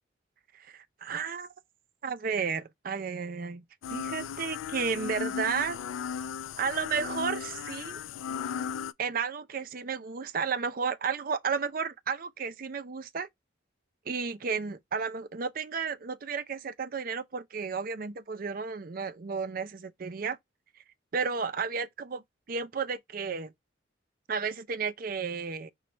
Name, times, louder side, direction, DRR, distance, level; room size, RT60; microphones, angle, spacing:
voice 1, 0.5-1.5 2.0-3.6 3.9-5.8 6.6-8.0 9.0-13.3 14.1-20.4 21.1-22.2 22.5-23.5 24.3-25.7, right 5 dB, 45° right, 0.5 m, -33 dB
sound 1, 3.8-8.9, left 7 dB, 85° left, 0.3 m, -36 dB
5.1 x 2.3 x 4.3 m
head